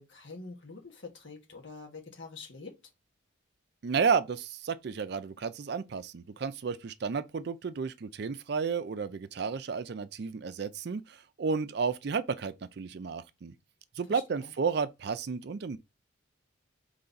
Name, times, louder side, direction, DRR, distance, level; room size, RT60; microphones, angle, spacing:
voice 1, 0.0-2.8 14.1-14.5, left 4 dB, 65° left, 1.4 m, -46 dB
voice 2, 3.8-13.5 14.0-15.8, right 5 dB, 50° right, 0.4 m, -32 dB
3.9 x 3.3 x 3.9 m
head